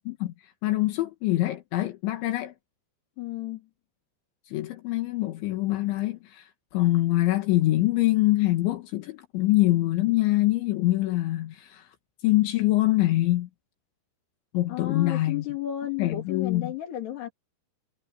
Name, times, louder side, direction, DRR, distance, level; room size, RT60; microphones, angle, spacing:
voice 1, 0.6-2.5 4.5-11.9 12.2-13.5 14.5-15.5 16.0-16.7, left 17 dB, 80° left, 3.9 m, -24 dB
voice 2, 3.2-3.6 14.7-17.3, left 13 dB, 65° left, 4.7 m, -33 dB
omnidirectional pair, 5.3 m